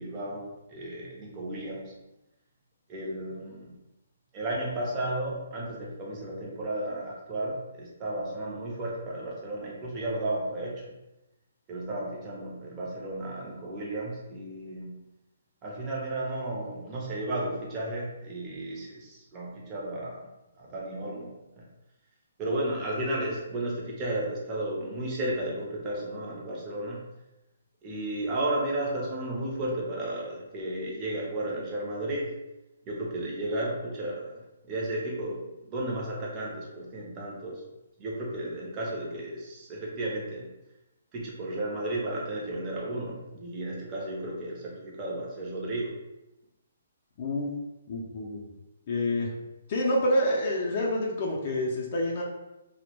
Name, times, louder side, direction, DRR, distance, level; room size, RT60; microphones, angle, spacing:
voice 1, 0.0-1.9 2.9-3.8 4.3-10.9 11.7-15.0 15.6-20.3 20.5-21.7 22.4-27.0 27.8-32.3 32.9-37.6 38.0-40.5 41.1-46.0, right 1 dB, 20° right, -3 dB, 0.6 m, -33 dB
voice 2, 47.2-47.5 47.9-48.4 48.9-49.3 49.7-52.2, left 1 dB, 40° left, -3 dB, 0.4 m, -27 dB
2.1 x 2.0 x 3.0 m, 0.96 s
hypercardioid pair, 160°, 0 cm